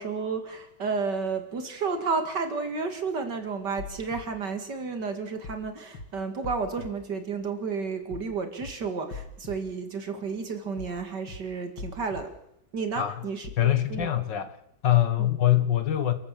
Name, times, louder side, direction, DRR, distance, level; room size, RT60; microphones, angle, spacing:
voice 1, 0.0-12.3 12.7-13.5 13.9-14.1, right 4 dB, 60° right, 2.8 m, -31 dB
sound 1, 3.8-4.2 5.4-5.6 5.9-6.1 6.4-6.9 8.1-8.3 8.6-8.7 9.1-9.6 10.8-11.0 11.3-11.4 11.8-12.2 13.4-13.6 13.9-14.1, left 4 dB, 85° left, 3.3 m, -40 dB
voice 2, 13.6-14.6 14.8-16.1, left 12 dB, 65° left, 2.0 m, -23 dB
29.5 x 13.5 x 7.6 m
omnidirectional pair, 2.1 m